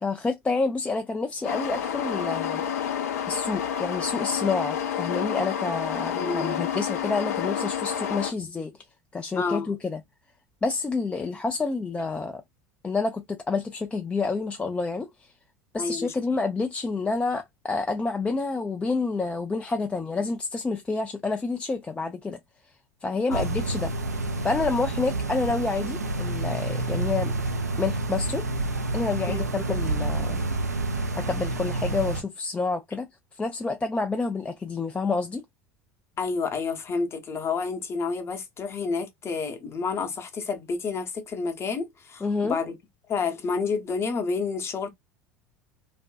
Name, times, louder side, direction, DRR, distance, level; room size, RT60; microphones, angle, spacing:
voice 1, 0.0-2.6 3.1-8.7 9.1-10.0 10.6-12.4 12.8-15.3 15.7-22.4 23.0-23.9 24.4-27.3 27.8-28.4 28.9-30.4 31.2-33.1 33.3-35.4 42.2-42.6, left 4 dB, 15° left, 0.3 m, -28 dB
sound 1, 1.4-8.3, left 8 dB, 70° left, 0.5 m, -29 dB
voice 2, 6.1-6.5 8.4-8.5 9.4-9.7 15.8-16.1 23.3-23.4 29.3-29.4 36.2-42.8 43.1-44.9, left 4 dB, 30° left, 0.7 m, -29 dB
sound 2, 23.3-32.2, right 2 dB, 90° right, 0.4 m, -28 dB
2.5 x 2.2 x 2.3 m
figure-of-eight pair, 75°, 9 cm